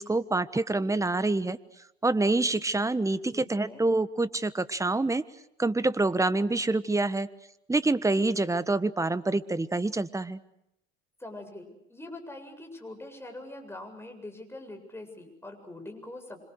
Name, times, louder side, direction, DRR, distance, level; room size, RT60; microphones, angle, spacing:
voice 1, 0.0-1.6 2.0-5.2 5.6-7.3 7.7-10.4, right 2 dB, 10° right, 15 dB, 1.3 m, -26 dB
voice 2, 3.3-3.9 11.2-16.4, left 2 dB, 5° left, 4 dB, 7.6 m, -43 dB
26.5 x 26.5 x 6.6 m, 0.83 s
hypercardioid pair, 70°, 33 cm